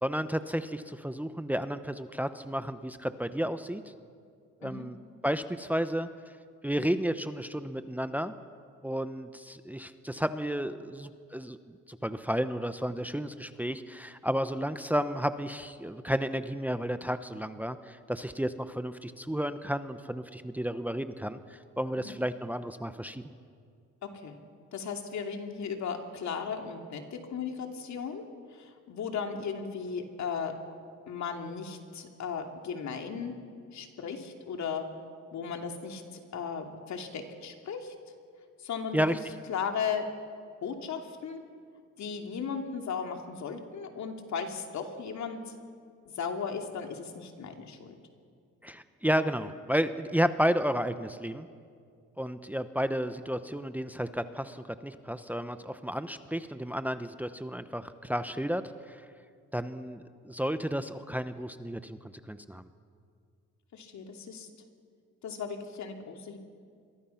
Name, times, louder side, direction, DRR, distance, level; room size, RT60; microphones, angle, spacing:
voice 1, 0.0-3.8 4.6-5.0 5.2-6.1 6.6-8.3 8.8-23.2 38.9-39.2 48.6-51.5 52.2-59.0 59.5-62.0 62.3-62.6, equal, 5° right, 11 dB, 0.9 m, -32 dB
voice 2, 24.0-24.4 24.7-30.5 31.1-33.3 33.7-34.9 35.3-37.9 38.6-39.1 39.5-40.0 40.6-41.4 42.0-45.5 46.1-48.0 63.7-64.5 65.2-66.4, left 6 dB, 65° left, 4 dB, 2.8 m, -36 dB
28.0 x 23.5 x 5.8 m, 2.2 s
cardioid pair, 90°, 30 cm